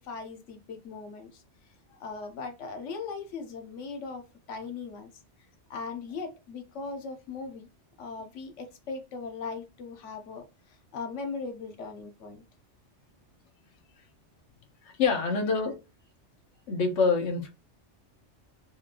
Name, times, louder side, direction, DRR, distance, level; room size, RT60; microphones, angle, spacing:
voice 1, 0.0-1.4 2.0-4.2 4.5-5.1 5.7-7.7 8.0-12.4 13.9-14.1, left 4 dB, 90° left, 1.1 m, -39 dB
voice 2, 14.8-15.8 16.7-17.5, left 4 dB, 75° left, 1.2 m, -26 dB
4.4 x 2.4 x 2.9 m
omnidirectional pair, 1.2 m